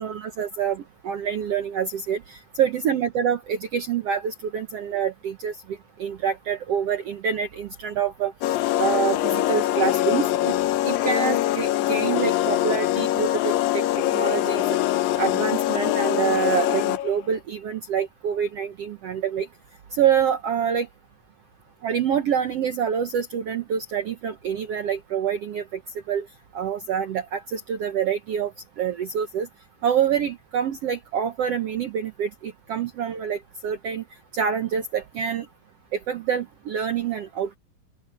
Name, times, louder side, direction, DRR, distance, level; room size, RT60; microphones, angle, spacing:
voice 1, 0.0-5.5 6.0-8.3 8.8-10.6 10.8-14.6 15.2-19.5 19.9-20.9 21.8-25.6 26.1-26.3 26.5-29.5 29.8-34.0 34.3-35.5 35.9-37.6, right 8 dB, 75° right, 1.4 m, -26 dB
sound 1, 8.4-17.2, left 14 dB, 75° left, 2.6 m, -23 dB
open air
omnidirectional pair, 4.2 m